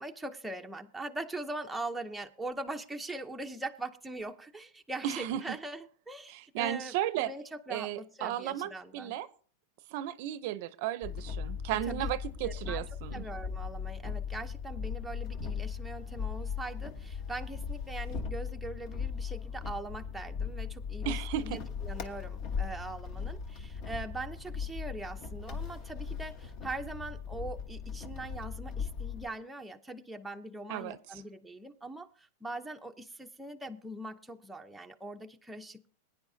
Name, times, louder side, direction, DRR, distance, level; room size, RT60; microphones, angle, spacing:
voice 1, 0.0-9.2 11.7-12.1 12.4-21.2 21.4-35.9, right 2 dB, 5° right, 3 dB, 0.7 m, -41 dB
voice 2, 5.0-5.6 6.3-7.3 7.7-9.3 9.9-13.2 21.1-21.6 30.7-31.0, right 12 dB, 50° right, 15 dB, 0.6 m, -34 dB
sound 1, 11.0-29.3, left 6 dB, 40° left, 1.3 m, -38 dB
21.0 x 9.8 x 2.7 m, 0.42 s
supercardioid pair, 155°, 0 cm